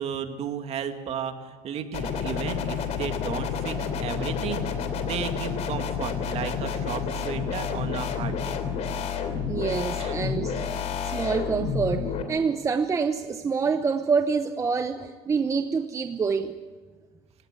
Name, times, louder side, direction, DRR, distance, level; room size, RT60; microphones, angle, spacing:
voice 1, 0.0-8.6 10.0-10.2, right 8 dB, 45° right, 7 dB, 2.1 m, -34 dB
sound 1, 1.9-12.2, left 6 dB, 50° left, 3.1 m, -30 dB
voice 2, 9.5-16.5, right 5 dB, 20° right, 9 dB, 0.8 m, -27 dB
29.0 x 17.5 x 8.3 m, 1.4 s
cardioid pair, 135°, 15 cm